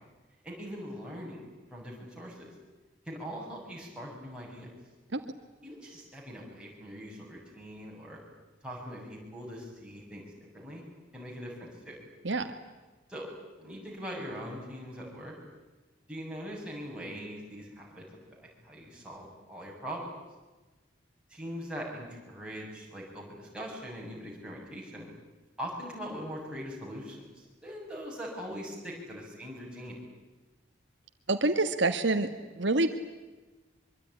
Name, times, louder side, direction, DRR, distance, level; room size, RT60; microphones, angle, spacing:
voice 1, 0.4-2.5 3.1-4.7 5.6-8.2 8.6-10.8 11.1-12.0 13.1-13.3 13.6-15.3 16.1-18.1 18.4-20.1 21.3-25.1 25.6-30.0, equal, 5° right, -3 dB, 7.2 m, -41 dB
voice 2, 31.3-32.3 32.6-32.9, right 2 dB, 65° right, 7 dB, 1.5 m, -26 dB
24.0 x 23.5 x 10.0 m, 1.2 s
head